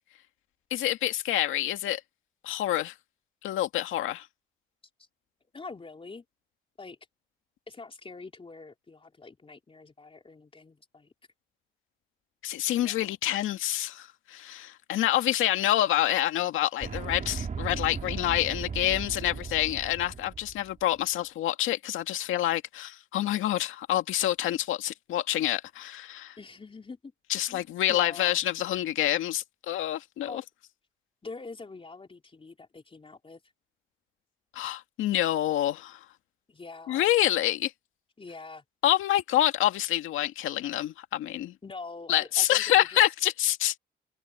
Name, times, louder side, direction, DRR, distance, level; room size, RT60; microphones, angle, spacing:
voice 1, 0.7-2.0 2.4-2.9 3.4-4.3 12.4-26.4 27.3-30.4 34.5-36.0 36.9-37.7 38.8-41.5 42.1-43.7, left 13 dB, 85° left, 2.1 m, -27 dB
voice 2, 5.5-6.2 6.8-7.0 7.7-11.1 12.8-13.1 26.4-27.1 27.5-27.6 27.9-28.4 30.3-30.4 31.2-33.4 36.5-37.1 38.2-38.6 41.6-43.0, left 3 dB, 25° left, 4.0 m, -44 dB
sound 1, 16.8-20.7, right 5 dB, 40° right, 3.3 m, -36 dB
cardioid pair, 90°, 20 cm